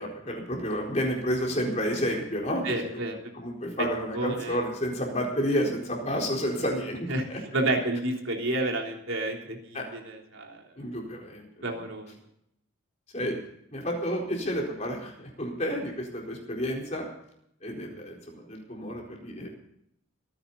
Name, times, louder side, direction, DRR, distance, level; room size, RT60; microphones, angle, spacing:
voice 1, 0.0-2.9 3.3-7.4 9.7-9.8 10.8-11.8 13.1-13.4 13.7-17.1 17.6-19.5, equal, 35° left, -1 dB, 4.3 m, -30 dB
voice 2, 2.6-3.2 4.1-4.6 7.1-10.6 11.6-12.1, right 2 dB, 75° right, 1 dB, 3.5 m, -30 dB
25.5 x 10.0 x 4.1 m, 0.74 s
head